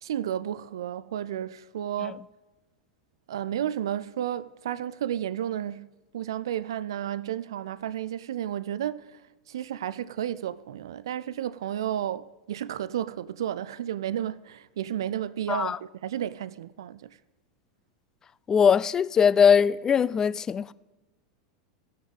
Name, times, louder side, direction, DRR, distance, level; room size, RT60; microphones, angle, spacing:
voice 1, 0.0-2.2 3.3-5.9 6.1-17.2, right 10 dB, 70° right, 0.3 m, -32 dB
voice 2, 18.5-20.7, left 7 dB, 25° left, 0.3 m, -21 dB
15.5 x 6.3 x 5.3 m
hypercardioid pair, 90°, 3 cm